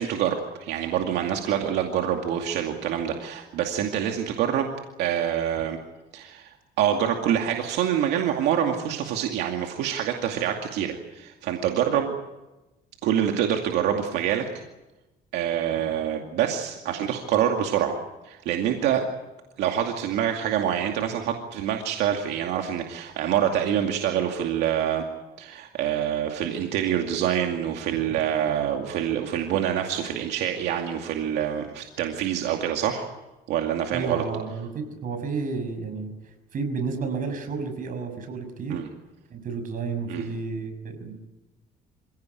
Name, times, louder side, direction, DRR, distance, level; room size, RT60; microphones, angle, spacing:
voice 1, 0.0-4.7 5.0-5.8 6.1-12.1 13.0-14.4 15.3-17.9 18.2-19.0 19.6-25.0 25.4-33.1 33.5-34.2 38.7-38.9 40.1-40.3, right 9 dB, 85° right, 3 dB, 2.4 m, -26 dB
voice 2, 33.9-38.8 39.3-41.4, right 4 dB, 55° right, 7 dB, 6.2 m, -32 dB
27.0 x 17.0 x 9.4 m, 1.0 s
cardioid pair, 110°, 17 cm